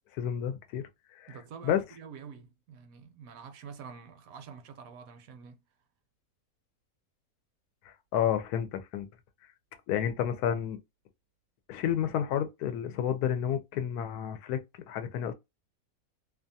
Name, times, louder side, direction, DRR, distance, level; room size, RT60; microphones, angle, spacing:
voice 1, 0.1-0.9 1.2-1.4 1.6-1.8 7.9-9.1 9.9-10.8 11.7-14.6 14.9-15.3, left 9 dB, 85° left, 1.1 m, -30 dB
voice 2, 1.3-5.6, right 6 dB, 70° right, 0.9 m, -47 dB
2.7 x 2.3 x 2.6 m
omnidirectional pair, 1.6 m